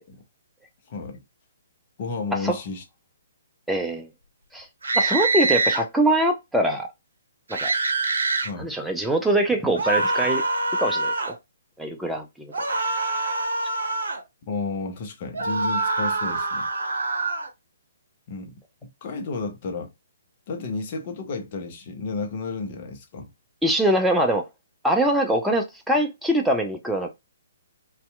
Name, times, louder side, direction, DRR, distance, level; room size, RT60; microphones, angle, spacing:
voice 1, 0.9-1.2 2.0-2.8 8.4-8.7 14.5-16.7 18.3-19.9 20.5-23.3, left 4 dB, 40° left, 0.7 m, -32 dB
voice 2, 3.7-4.1 4.5-4.7 4.9-6.9 7.5-7.7 8.6-10.4 10.8-11.3 11.8-12.7 23.6-24.4 24.8-27.1, right 1 dB, ahead, 0.4 m, -23 dB
sound 1, 4.8-5.8 7.5-8.5 9.8-11.4 12.5-14.2 15.3-17.5, right 3 dB, 70° right, 0.6 m, -25 dB
2.6 x 2.2 x 2.2 m
figure-of-eight pair, 130°, 0 cm